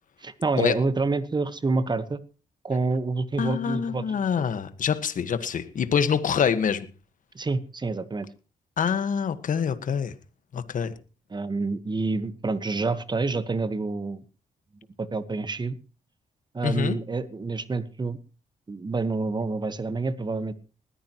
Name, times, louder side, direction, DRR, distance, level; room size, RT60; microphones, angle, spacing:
voice 1, 0.2-2.2 2.6-4.0 7.3-8.3 11.3-14.2 15.0-15.8 16.5-18.2 18.7-20.5, right 3 dB, 30° right, 13 dB, 1.4 m, -27 dB
voice 2, 3.4-6.9 8.8-10.1 10.5-10.9 16.6-17.0, left 7 dB, 65° left, 12 dB, 1.6 m, -25 dB
20.0 x 14.5 x 3.1 m, 0.35 s
cardioid pair, 70°, 15 cm